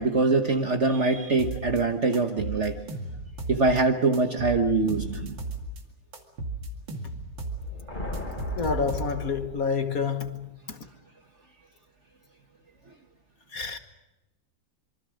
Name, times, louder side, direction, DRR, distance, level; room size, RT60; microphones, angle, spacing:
voice 1, 0.0-2.8 3.5-5.4, right 3 dB, 40° right, 1.3 m, -23 dB
sound 1, 1.4-1.8 2.1-3.8 4.1-5.8 6.1-7.6 7.9-9.4, right 2 dB, 70° right, 3.0 m, -35 dB
sound 2, 7.4-10.1, left 1 dB, 25° left, 3.0 m, -38 dB
voice 2, 8.6-10.9 13.5-13.8, left 5 dB, 50° left, 1.6 m, -29 dB
26.5 x 24.0 x 6.4 m
omnidirectional pair, 2.2 m